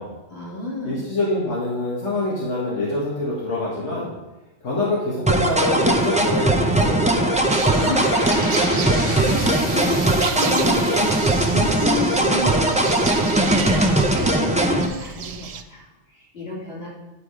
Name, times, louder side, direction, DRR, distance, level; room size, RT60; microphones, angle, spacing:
voice 1, 0.3-1.0 7.7-16.9, left 2 dB, 65° left, -6 dB, 3.1 m, -31 dB
voice 2, 0.8-4.1 4.6-7.4, left 2 dB, 85° left, -6 dB, 2.0 m, -25 dB
sound 1, 5.3-14.9, right 1 dB, 10° right, 0.6 m, -19 dB
sound 2, 7.5-15.6, right 7 dB, 65° right, 0.3 m, -33 dB
sound 3, 7.8-13.7, left 2 dB, 25° left, 1.1 m, -35 dB
10.5 x 4.7 x 5.0 m, 1.0 s
omnidirectional pair, 1.2 m